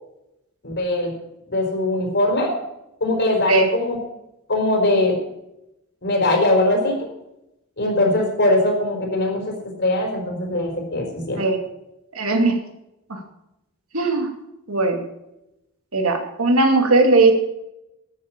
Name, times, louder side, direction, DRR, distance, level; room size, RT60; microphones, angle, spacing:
voice 1, 0.6-1.1 1.5-2.6 3.0-4.0 4.5-5.1 6.0-6.9 7.8-9.5 9.8-11.4, left 2 dB, 55° left, 1 dB, 4.4 m, -21 dB
voice 2, 12.2-12.6 13.1-13.2 13.9-14.3 14.7-15.0 15.9-17.3, right 3 dB, 75° right, 4 dB, 2.3 m, -18 dB
12.5 x 8.2 x 8.7 m, 0.89 s
head